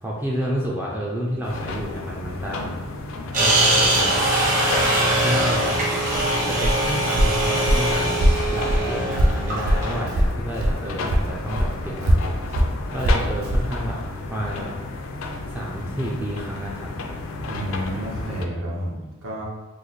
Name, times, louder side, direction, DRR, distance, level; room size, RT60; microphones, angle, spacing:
voice 1, 0.0-2.8 3.4-4.2 5.2-5.8 6.4-12.2 12.9-14.0 14.3-14.8 15.5-16.9, equal, 10° right, -4 dB, 0.3 m, -30 dB
sound 1, 1.4-18.5, left 2 dB, 70° left, 0.4 m, -32 dB
sound 2, 3.3-10.0, right 1 dB, 40° right, 1.0 m, -22 dB
Walk footsteps, 6.0-10.8 11.1-13.7, equal, 80° right, 0.4 m, -22 dB
voice 2, 17.5-19.5, equal, 65° right, -4 dB, 0.9 m, -30 dB
3.1 x 2.1 x 3.9 m, 1.2 s
head